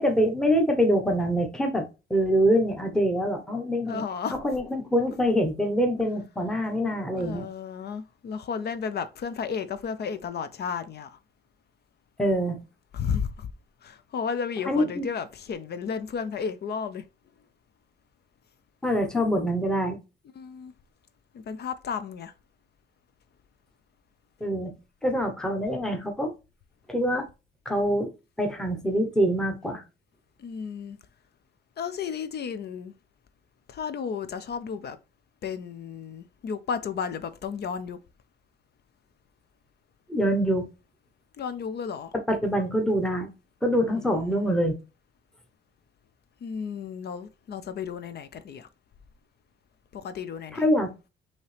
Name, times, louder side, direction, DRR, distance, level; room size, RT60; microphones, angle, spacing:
voice 1, 0.0-4.0 4.4-7.4 12.2-12.6 14.7-15.1 18.8-20.0 24.4-24.7 25.0-26.3 26.9-27.3 27.6-28.1 28.4-29.8 40.1-40.7 42.3-43.3 43.6-44.8 50.5-50.9, equal, 5° left, 0.9 m, -25 dB
voice 2, 3.9-4.4 7.1-11.2 12.9-13.5 13.8-17.0 20.4-20.7 21.3-22.3 30.4-31.0 31.8-32.9 33.7-35.0 35.4-38.0 41.4-42.1 43.9-44.5 46.4-48.7 49.9-50.6, left 6 dB, 55° left, 0.6 m, -33 dB
5.5 x 2.9 x 3.3 m
cardioid pair, 90°, 20 cm